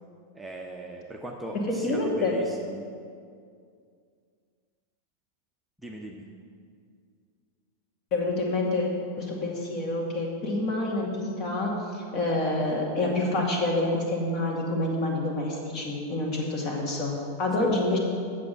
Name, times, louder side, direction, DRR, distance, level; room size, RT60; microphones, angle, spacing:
voice 1, 0.3-2.9 5.8-6.3 17.6-17.7, right 1 dB, 5° right, -1 dB, 0.8 m, -39 dB
voice 2, 1.5-2.3 8.1-8.9 9.2-18.0, left 2 dB, 35° left, -1 dB, 2.3 m, -27 dB
8.4 x 6.8 x 7.6 m, 2.3 s
figure-of-eight pair, 90°, 0 cm